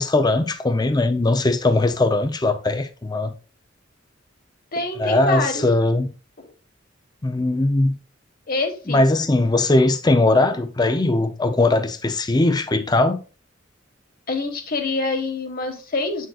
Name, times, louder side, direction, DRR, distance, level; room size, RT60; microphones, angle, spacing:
voice 1, 0.0-3.3 5.0-6.1 7.2-8.0 8.9-13.2, left 2 dB, 20° left, 0.5 m, -19 dB
voice 2, 4.7-5.6 8.5-9.0 14.3-16.3, left 3 dB, 50° left, 1.5 m, -25 dB
7.9 x 6.4 x 2.3 m
head